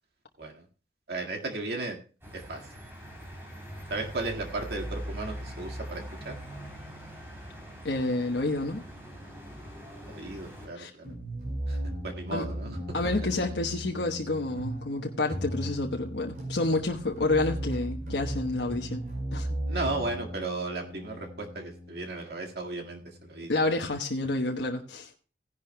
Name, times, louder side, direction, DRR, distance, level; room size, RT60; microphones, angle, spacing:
voice 1, 1.1-2.0 2.3-2.6 3.9-6.4 10.0-11.0 11.7-11.8 12.0-12.8 19.7-23.5, right 2 dB, 65° right, 2 dB, 1.9 m, -35 dB
sound 1, 2.2-10.7, equal, 15° right, 3.4 m, -42 dB
voice 2, 7.8-8.8 10.7-10.9 12.3-12.4 12.9-19.1 19.3-19.6 23.5-25.1, left 2 dB, 85° left, 1 dB, 1.2 m, -29 dB
sound 2, 11.0-23.9, right 1 dB, 45° right, 5.1 m, -37 dB
17.0 x 10.5 x 2.2 m, 0.37 s
head